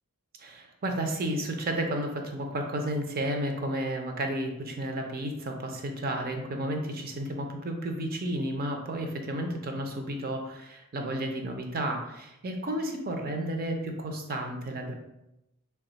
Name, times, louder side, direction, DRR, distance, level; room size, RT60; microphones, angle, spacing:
voice 1, 0.4-14.9, right 1 dB, 45° right, 4 dB, 0.5 m, -32 dB
3.4 x 2.3 x 3.9 m, 0.89 s
head